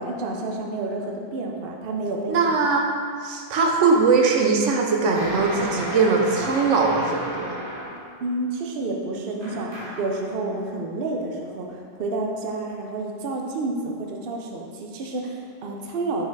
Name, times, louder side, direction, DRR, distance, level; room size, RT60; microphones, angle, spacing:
voice 1, 0.0-2.5 8.2-16.3, right 2 dB, 85° right, 1 dB, 0.5 m, -29 dB
voice 2, 2.3-2.9 3.2-7.5, right 4 dB, 60° right, 1 dB, 0.8 m, -20 dB
sound 1, 5.1-8.2 9.4-10.2, equal, 40° right, 1.0 m, -33 dB
5.2 x 4.0 x 4.6 m, 2.1 s
omnidirectional pair, 1.8 m